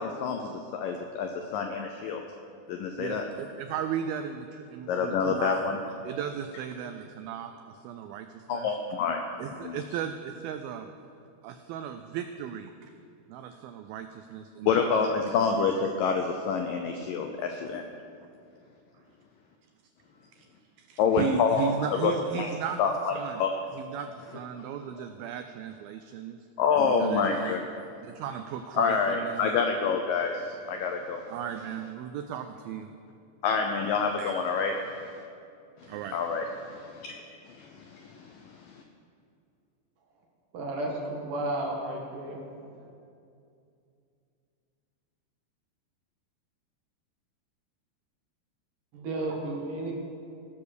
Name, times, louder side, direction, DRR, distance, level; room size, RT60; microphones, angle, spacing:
voice 1, 0.0-2.2 2.7-3.2 4.9-5.8 8.5-9.2 9.6-9.8 14.7-17.9 21.0-22.1 22.4-22.5 22.8-23.5 26.6-27.6 28.8-31.2 33.4-35.1 35.8-38.8, left 5 dB, 80° left, 4 dB, 1.9 m, -28 dB
voice 2, 3.0-5.7 6.0-8.7 9.4-10.9 11.4-12.9 13.3-14.9 20.4-20.5 20.8-22.8 23.1-23.5 23.7-26.4 27.0-27.6 28.0-29.5 31.3-32.9 34.2-34.3 35.9-36.2, right 8 dB, 85° right, 8 dB, 2.1 m, -36 dB
voice 3, 40.5-42.4 48.9-49.9, right 2 dB, 60° right, -1 dB, 2.9 m, -32 dB
17.5 x 6.8 x 6.5 m, 2.5 s
omnidirectional pair, 4.7 m